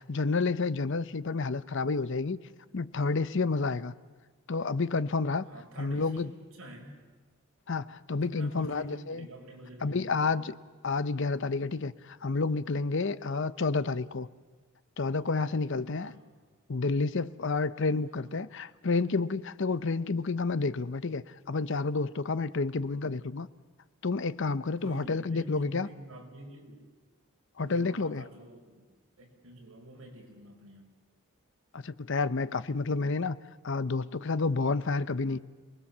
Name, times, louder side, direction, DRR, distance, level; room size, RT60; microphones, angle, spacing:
voice 1, 0.0-2.4 2.7-3.9 4.5-5.4 5.8-6.3 7.7-9.3 9.8-10.5 10.8-14.3 15.0-16.1 16.7-23.5 24.0-25.9 27.6-28.2 31.7-33.4 33.6-35.4, left 4 dB, 55° left, 15 dB, 0.7 m, -30 dB
voice 2, 5.5-7.0 8.2-10.5 16.0-16.3 18.1-18.4 24.8-26.8 27.6-28.9 29.2-30.9, right 1 dB, 75° right, 1 dB, 5.6 m, -47 dB
27.5 x 20.0 x 7.3 m, 1.4 s
head